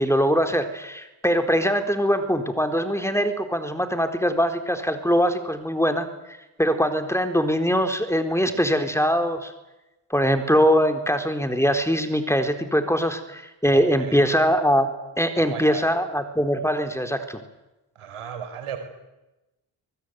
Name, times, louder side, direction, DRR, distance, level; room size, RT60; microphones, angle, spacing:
voice 1, 0.0-6.1 6.6-9.5 10.1-14.9 15.2-17.4, equal, 5° left, 7 dB, 4.0 m, -22 dB
voice 2, 13.7-14.2 15.3-15.9 18.0-18.8, right 8 dB, 85° right, 6 dB, 4.7 m, -35 dB
23.5 x 20.0 x 9.5 m, 1.0 s
supercardioid pair, 45°, 50 cm